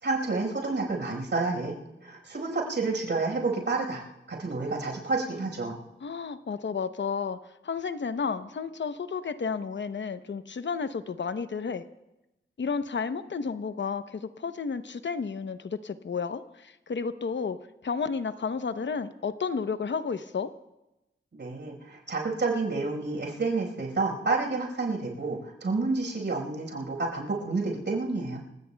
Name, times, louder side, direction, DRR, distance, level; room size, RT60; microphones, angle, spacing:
voice 1, 0.0-1.8 2.0-4.0 4.3-5.8 21.3-28.4, right 3 dB, 70° right, 1 dB, 4.8 m, -29 dB
voice 2, 6.0-7.4 7.6-11.8 12.6-20.5, left 5 dB, 70° left, 10 dB, 0.8 m, -32 dB
29.5 x 17.0 x 2.3 m, 0.94 s
wide cardioid pair, 85°, 20 cm